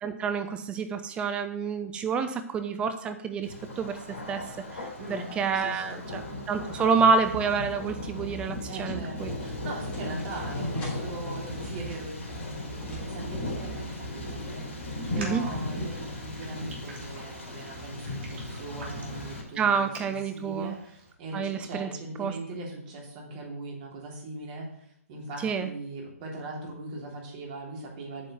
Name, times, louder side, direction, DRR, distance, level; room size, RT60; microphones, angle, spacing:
voice 1, 0.0-3.5 3.8-4.0 4.3-4.4 4.7-9.3 15.2-15.4 19.6-20.8 21.3-21.9 22.2-22.3 25.4-25.7, right 5 dB, 15° right, 8 dB, 0.6 m, -28 dB
Thunder, 3.4-19.4, left 1 dB, 55° left, 3.1 m, -36 dB
voice 2, 5.0-6.0 8.6-28.3, right 2 dB, 35° right, -2 dB, 3.4 m, -40 dB
sound 1, 8.4-13.5, left 1 dB, 15° left, 3.3 m, -50 dB
Raindrop, 14.9-21.1, right 2 dB, 50° right, 3.0 m, -47 dB
8.6 x 5.4 x 7.6 m, 0.71 s
figure-of-eight pair, 125°, 8 cm